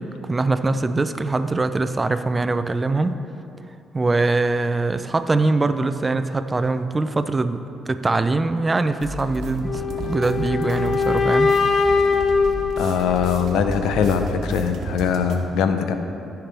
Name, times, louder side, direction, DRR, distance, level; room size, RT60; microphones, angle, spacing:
voice 1, 0.0-3.2 3.9-11.6, right 3 dB, 25° right, 10 dB, 0.4 m, -22 dB
sound 1, 9.0-15.4, right 3 dB, 75° right, 1.1 m, -33 dB
sound 2, 9.6-13.7, left 4 dB, 40° left, 0.6 m, -22 dB
voice 2, 12.8-15.9, left 6 dB, 90° left, 7 dB, 0.6 m, -21 dB
15.5 x 5.8 x 3.4 m, 2.9 s
cardioid pair, 90°, 0 cm